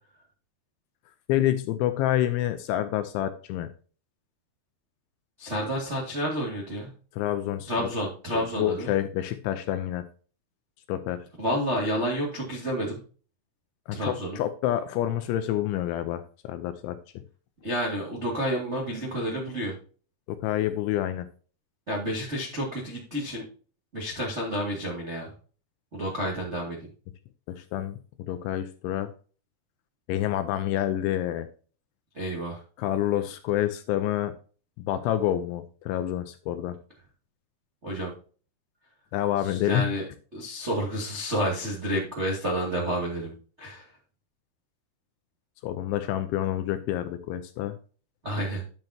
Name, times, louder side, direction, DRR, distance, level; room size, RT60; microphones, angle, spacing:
voice 1, 1.3-3.7 7.1-7.9 8.3-10.0 10.9-11.3 13.9-17.2 20.4-21.3 27.5-29.1 30.1-31.5 32.8-34.3 34.8-36.8 39.1-39.9 45.6-47.8, left 12 dB, 80° left, 10 dB, 2.8 m, -28 dB
voice 2, 5.4-6.9 7.7-8.9 11.4-13.0 13.9-14.4 17.6-19.7 21.9-23.4 23.9-25.3 25.9-26.8 32.1-32.6 37.8-38.1 39.4-40.0 40.3-43.9 48.2-48.6, equal, 85° right, -3 dB, 0.6 m, -30 dB
11.0 x 7.7 x 2.8 m, 0.39 s
omnidirectional pair, 5.9 m